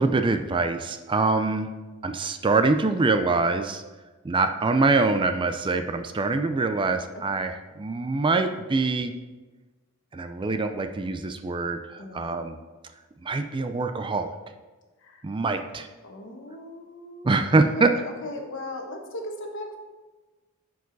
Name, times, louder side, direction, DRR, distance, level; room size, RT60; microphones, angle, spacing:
voice 1, 0.0-1.7 2.0-3.8 4.2-9.1 10.1-12.6 13.2-14.3 15.2-15.9 17.2-17.9, right 3 dB, 20° right, 7 dB, 0.4 m, -24 dB
voice 2, 12.0-12.5 15.0-15.2 16.0-19.7, left 1 dB, 60° left, 2 dB, 1.2 m, -38 dB
11.0 x 4.7 x 4.0 m, 1.2 s
head